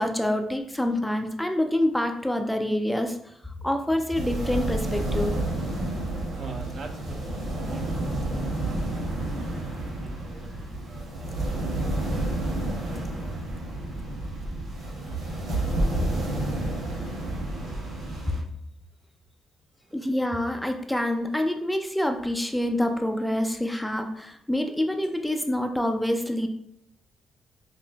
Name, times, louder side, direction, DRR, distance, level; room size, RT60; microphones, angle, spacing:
voice 1, 0.0-3.2 3.6-5.3 19.9-26.5, left 1 dB, 5° left, 5 dB, 0.4 m, -26 dB
sound 1, 4.1-18.4, right 1 dB, 90° right, 1.4 m, -30 dB
voice 2, 6.3-13.1 15.0-15.3, right 4 dB, 55° right, 4 dB, 0.6 m, -43 dB
5.5 x 2.5 x 2.3 m, 0.72 s
cardioid pair, 90°, 0 cm